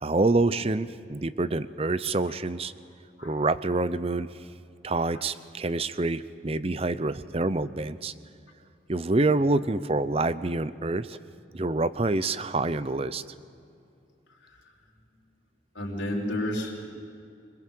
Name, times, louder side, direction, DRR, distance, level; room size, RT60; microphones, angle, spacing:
voice 1, 0.0-2.7 3.2-4.4 4.8-8.1 8.9-11.2 11.5-13.2, right 2 dB, 30° right, 14 dB, 0.6 m, -27 dB
voice 2, 15.7-16.9, left 1 dB, 80° left, -2 dB, 4.7 m, -31 dB
26.0 x 20.5 x 7.7 m, 2.5 s
head